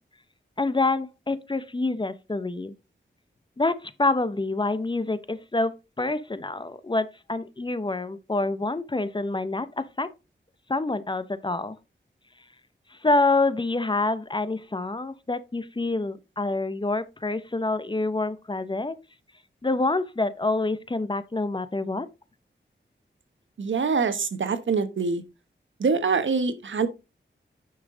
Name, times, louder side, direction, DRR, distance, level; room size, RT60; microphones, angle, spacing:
voice 1, 0.6-2.7 3.6-5.7 6.0-10.1 10.7-11.8 12.9-18.9 19.6-22.1, left 2 dB, 25° left, 0.7 m, -27 dB
voice 2, 23.6-25.2 25.8-26.9, right 5 dB, 75° right, 1.1 m, -24 dB
9.7 x 5.7 x 3.7 m
wide cardioid pair, 105°, 20 cm